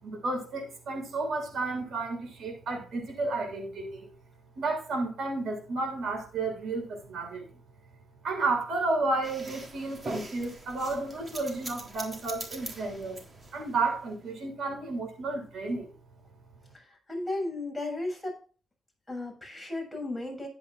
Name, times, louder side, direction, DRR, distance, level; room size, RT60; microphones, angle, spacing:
voice 1, 0.0-4.1 4.6-7.5 8.2-13.3 13.5-15.9, right 3 dB, 70° right, 3 dB, 6.9 m, -32 dB
sound 1, 9.2-14.0, right 2 dB, 30° right, 3.7 m, -42 dB
voice 2, 16.7-18.4 19.1-20.5, left 2 dB, 5° left, 0 dB, 7.4 m, -35 dB
15.5 x 10.5 x 2.6 m, 0.38 s
cardioid pair, 110°, 0 cm